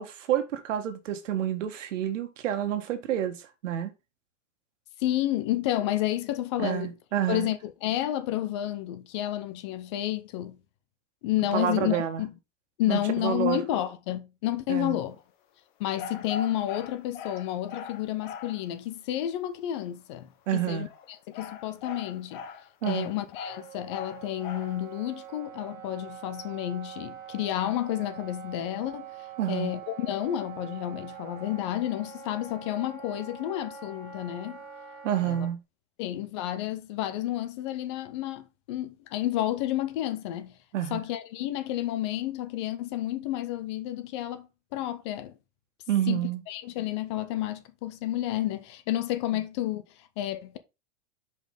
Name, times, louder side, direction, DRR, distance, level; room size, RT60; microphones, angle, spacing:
voice 1, 0.0-3.9 6.6-7.5 11.5-12.2 12.9-13.6 14.7-15.0 20.5-20.9 22.8-23.1 29.4-29.7 35.0-35.6 40.7-41.0 45.9-46.4, right 11 dB, 80° right, 1.5 m, -29 dB
voice 2, 5.0-6.9 7.3-10.6 11.2-12.3 12.8-15.2 15.8-22.4 22.8-29.1 29.5-34.6 35.2-35.5 36.0-40.5 40.9-44.5 44.7-45.3 46.1-46.2 46.5-50.6, left 13 dB, 25° left, 0.4 m, -31 dB
sound 1, 15.9-18.6 20.7-24.8, left 6 dB, 40° left, 0.8 m, -41 dB
Wind instrument woodwind instrument, 23.4-35.5, right 7 dB, 25° right, 1.6 m, -44 dB
5.3 x 5.3 x 3.7 m
supercardioid pair, 170°, 37 cm